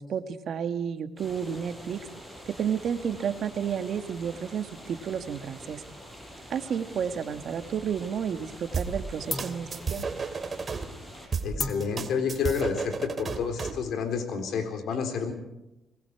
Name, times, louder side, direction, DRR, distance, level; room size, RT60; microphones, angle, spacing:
voice 1, 0.0-2.0 2.5-5.8 6.5-10.0, right 7 dB, 65° right, 8 dB, 1.8 m, -31 dB
sound 1, 1.2-11.3, equal, 10° left, 7.7 m, -46 dB
sound 2, 7.3-8.2 8.5-8.9 9.3-14.4, left 4 dB, 40° left, 2.1 m, -40 dB
sound 3, 8.7-10.8 11.3-13.8, right 5 dB, 40° right, 2.5 m, -33 dB
voice 2, 11.4-15.3, left 6 dB, 75° left, 7 dB, 3.9 m, -29 dB
26.0 x 20.5 x 4.8 m, 0.91 s
cardioid pair, 90°, 0 cm